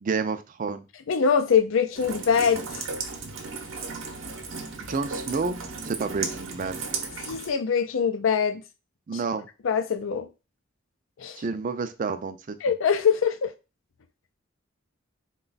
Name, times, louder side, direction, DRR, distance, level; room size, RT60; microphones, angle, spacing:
voice 1, 0.0-0.8 4.8-5.6 5.8-6.8 9.1-9.5 11.4-12.6, right 4 dB, 40° right, 0.4 m, -29 dB
voice 2, 1.1-2.8 7.2-8.6 9.6-10.3 11.2-11.4 12.6-13.5, left 6 dB, 75° left, 0.4 m, -23 dB
Rain, 2.0-7.5, right 4 dB, 75° right, 0.8 m, -35 dB
3.9 x 2.3 x 3.9 m
head